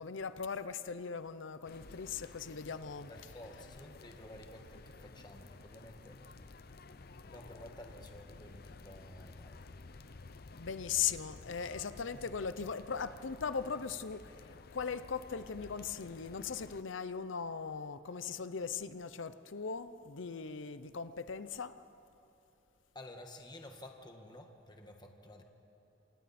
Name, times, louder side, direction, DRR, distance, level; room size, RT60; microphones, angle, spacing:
voice 1, 0.0-3.9 10.5-21.7, left 6 dB, 90° left, 13 dB, 0.7 m, -39 dB
sound 1, 1.6-16.8, left 3 dB, 55° left, 0.7 m, -53 dB
voice 2, 3.1-6.4 7.3-9.6 12.1-12.3 22.9-25.4, left 1 dB, 25° left, 3 dB, 1.5 m, -52 dB
27.0 x 27.0 x 4.3 m, 3.0 s
head